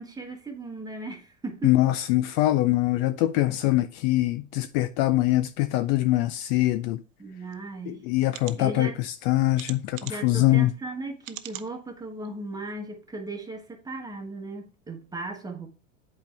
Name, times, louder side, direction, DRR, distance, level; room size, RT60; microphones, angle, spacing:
voice 1, 0.0-1.7 7.2-8.0 8.6-9.0 10.1-15.7, right 2 dB, 10° right, 1.3 m, -37 dB
voice 2, 1.6-7.0 7.9-10.7, left 16 dB, 50° left, 0.4 m, -23 dB
sound 1, 7.5-7.6 8.3-8.5 9.5-10.3 11.2-11.7 12.2-12.3 12.7-12.8, right 14 dB, 75° right, 0.7 m, -40 dB
8.1 x 4.4 x 3.4 m
hypercardioid pair, 105°, 39 cm